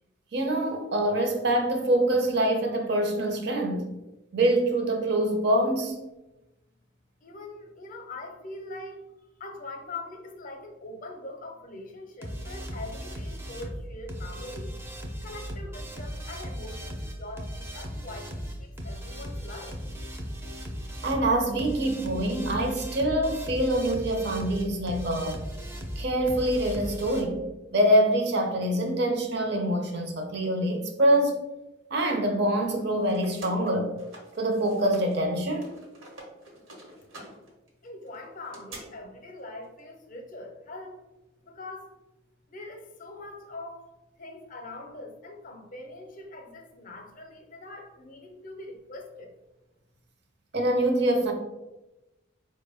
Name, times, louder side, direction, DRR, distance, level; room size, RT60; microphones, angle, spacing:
voice 1, 0.3-3.9 4.3-6.0 21.0-25.4 26.0-27.4 27.7-31.4 31.9-33.9 34.4-35.7 50.5-51.3, right 1 dB, 55° right, 0.6 m, -25 dB
voice 2, 7.2-9.0 9.4-14.8 15.2-20.0 37.8-41.0 41.4-41.9 42.5-43.9 44.2-49.3, left 2 dB, 40° left, 0.5 m, -42 dB
sound 1, 12.2-27.2, equal, 10° right, 0.4 m, -37 dB
sound 2, 32.6-35.2 35.5-38.8, right 1 dB, 80° right, 1.0 m, -47 dB
4.5 x 2.2 x 3.4 m
head